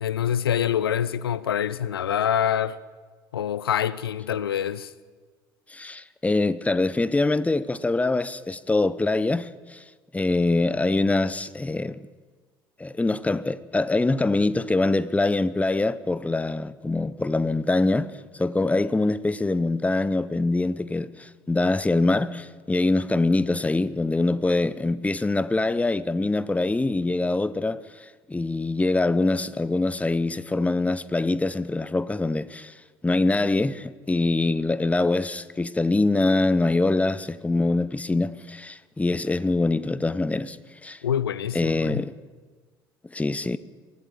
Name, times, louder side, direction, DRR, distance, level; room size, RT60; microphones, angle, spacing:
voice 1, 0.0-2.8 3.3-4.9 41.0-42.0, left 9 dB, 80° left, 0.6 m, -25 dB
voice 2, 5.7-9.8 10.1-12.0 12.8-32.7 33.0-40.6 40.8-41.0 41.5-42.1 43.1-43.6, left 2 dB, 10° left, 0.9 m, -24 dB
24.0 x 15.0 x 8.7 m
figure-of-eight pair, 60°, 12 cm